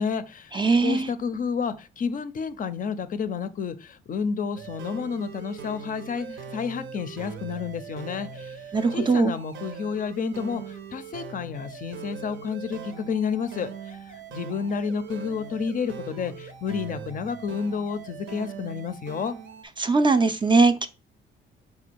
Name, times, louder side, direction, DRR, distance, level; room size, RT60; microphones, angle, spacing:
voice 1, 0.0-8.6 8.9-19.4, left 6 dB, 45° left, 0.4 m, -30 dB
voice 2, 0.5-1.1 8.7-9.3 19.8-20.9, right 4 dB, 25° right, 0.3 m, -20 dB
sound 1, 4.6-19.6, right 6 dB, 80° right, 0.7 m, -41 dB
4.2 x 2.3 x 4.4 m
cardioid pair, 90°, 20 cm